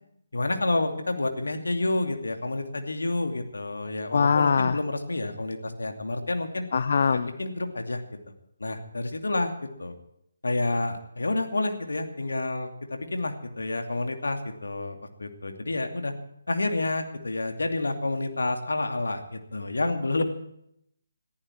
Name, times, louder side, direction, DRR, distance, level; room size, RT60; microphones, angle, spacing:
voice 1, 0.3-6.6 7.1-8.0 8.6-9.5 9.8-9.9 10.4-16.1 16.5-20.2, left 2 dB, 65° left, 5 dB, 2.6 m, -29 dB
voice 2, 4.1-4.8 6.7-7.3, left 5 dB, 45° left, 13 dB, 0.7 m, -22 dB
21.5 x 14.5 x 4.6 m, 0.73 s
figure-of-eight pair, 145°, 0 cm